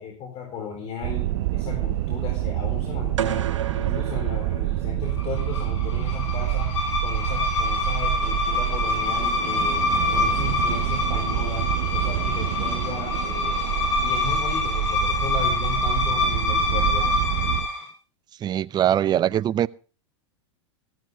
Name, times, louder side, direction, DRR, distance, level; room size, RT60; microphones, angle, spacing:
voice 1, 0.0-6.8 7.0-9.8 10.1-13.7 14.0-17.1, left 7 dB, 40° left, 4.3 m, -36 dB
sound 1, 1.0-17.7, right 16 dB, 60° right, 0.9 m, -27 dB
sound 2, 3.2-5.3, right 9 dB, 80° right, 1.5 m, -32 dB
sound 3, 5.2-17.9, left 3 dB, 80° left, 6.8 m, -26 dB
voice 2, 18.4-19.7, right 11 dB, 25° right, 0.6 m, -22 dB
15.5 x 14.5 x 3.7 m
hypercardioid pair, 105°, 15 cm